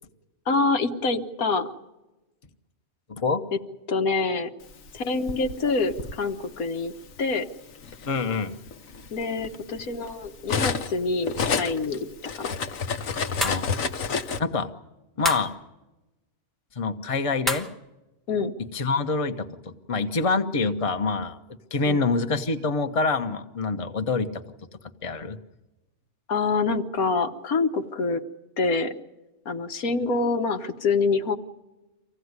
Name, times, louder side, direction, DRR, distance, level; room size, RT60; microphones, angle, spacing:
voice 1, 0.5-1.7 3.5-3.6 3.9-4.5 4.9-6.9 7.2-7.5 9.1-12.0 12.4-12.6 18.3-18.5 21.9-22.0 26.3-28.2 28.6-28.9 29.5-31.4, left 4 dB, 90° left, 6 dB, 1.7 m, -26 dB
voice 2, 3.1-3.4 8.1-8.6 13.4-13.7 14.4-14.7 15.2-15.5 16.7-17.7 18.7-21.4 21.7-24.4 25.0-25.4, left 4 dB, 25° left, 7 dB, 1.0 m, -26 dB
Cutlery silverware, 4.9-6.2 7.1-7.3 7.7-11.0 11.2-14.4, left 5 dB, 70° left, 1.4 m, -29 dB
sound 1, 13.4-13.7 15.2-15.5 17.5-17.8, left 1 dB, ahead, 1.1 m, -27 dB
25.5 x 16.5 x 9.6 m, 1.1 s
omnidirectional pair, 1.5 m